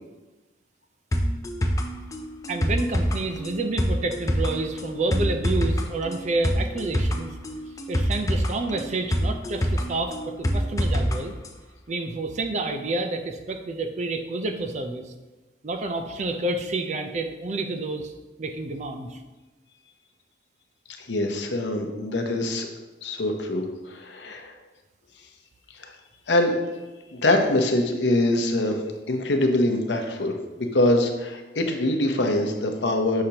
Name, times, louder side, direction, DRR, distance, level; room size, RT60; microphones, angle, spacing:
sound 1, 1.1-11.2 11.4-11.5, equal, 20° left, 0.5 m, -25 dB
voice 1, 2.5-7.3 7.9-11.3 11.9-15.1 15.6-18.1 18.4-19.2, right 2 dB, 40° right, 6 dB, 0.5 m, -29 dB
voice 2, 21.1-22.7 23.0-24.5 25.8-25.9 26.3-26.5 27.1-28.8 29.1-30.3 30.7-33.2, left 1 dB, 80° left, 4 dB, 0.8 m, -23 dB
6.5 x 5.7 x 2.9 m, 1.1 s
head